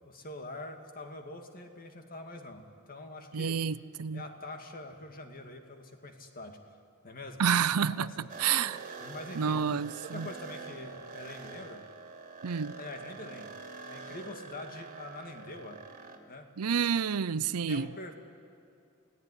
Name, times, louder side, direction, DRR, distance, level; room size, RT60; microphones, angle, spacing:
voice 1, 0.0-3.6 4.1-6.6 7.0-7.4 7.9-8.3 9.0-9.7 10.0-11.9 12.8-13.5 13.8-15.8 16.3-16.5 17.7-18.1, left 2 dB, 40° left, 2.2 m, -44 dB
voice 2, 3.3-4.2 7.4-8.8 9.3-10.3 12.4-12.8 16.6-17.9, right 7 dB, 85° right, 0.6 m, -29 dB
sound 1, 8.3-16.2, right 4 dB, 35° right, 2.6 m, -45 dB
29.0 x 17.0 x 9.9 m
head